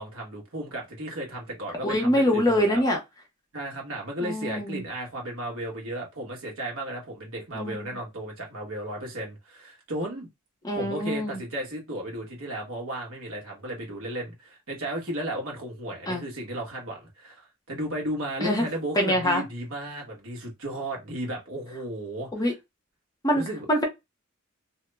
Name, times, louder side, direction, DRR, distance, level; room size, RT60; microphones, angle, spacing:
voice 1, 0.0-2.8 3.5-10.3 10.7-22.3 23.3-23.7, right 1 dB, 70° right, 1.4 m, -34 dB
voice 2, 1.8-3.0 4.2-4.8 7.5-7.9 10.6-11.4 16.1-16.2 18.4-18.7 19.0-19.4 22.3-22.5 23.2-23.4 23.7-23.8, equal, 15° left, 0.7 m, -24 dB
2.8 x 2.1 x 3.3 m
head